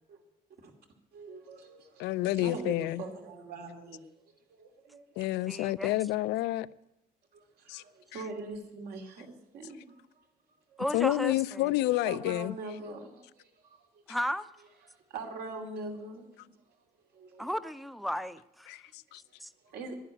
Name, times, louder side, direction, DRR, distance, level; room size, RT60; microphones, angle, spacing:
voice 1, 1.1-5.6 7.3-10.3 10.7-11.0 12.0-14.2 14.8-16.8 17.1-17.5 18.8-19.9, right 3 dB, 70° right, 2.7 m, -43 dB
voice 2, 2.0-3.0 5.2-6.7 7.7-7.8 10.9-12.5 18.7-19.2, left 16 dB, 90° left, 0.5 m, -29 dB
voice 3, 5.5-5.9 10.8-11.7 14.1-14.5 17.4-18.7 19.4-19.5, equal, ahead, 0.6 m, -34 dB
11.0 x 11.0 x 9.8 m
cardioid pair, 110°, 17 cm